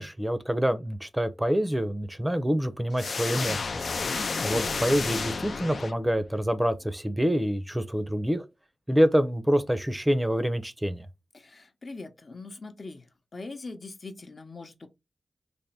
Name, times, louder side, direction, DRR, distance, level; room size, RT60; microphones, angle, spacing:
voice 1, 0.0-3.8 4.4-8.4 8.9-11.1, equal, 10° right, 0.6 m, -26 dB
sound 1, 3.0-6.3, left 4 dB, 70° left, 0.4 m, -31 dB
voice 2, 11.3-13.0 13.3-14.9, left 3 dB, 55° left, 0.8 m, -42 dB
3.5 x 2.1 x 4.0 m
cardioid pair, 50°, 0 cm